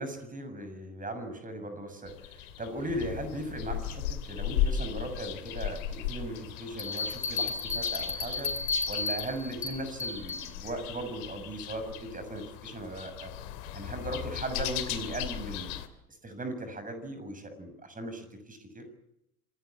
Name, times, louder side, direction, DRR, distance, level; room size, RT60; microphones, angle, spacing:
voice 1, 0.0-8.5 8.8-13.3 13.7-15.8 16.2-18.8, right 1 dB, 15° right, 8 dB, 6.8 m, -38 dB
sound 1, 2.1-15.9, left 10 dB, 60° left, 2.8 m, -37 dB
sound 2, 6.8-10.5, left 3 dB, 85° left, 3.9 m, -33 dB
26.5 x 19.0 x 8.5 m, 0.83 s
figure-of-eight pair, 75°, 47 cm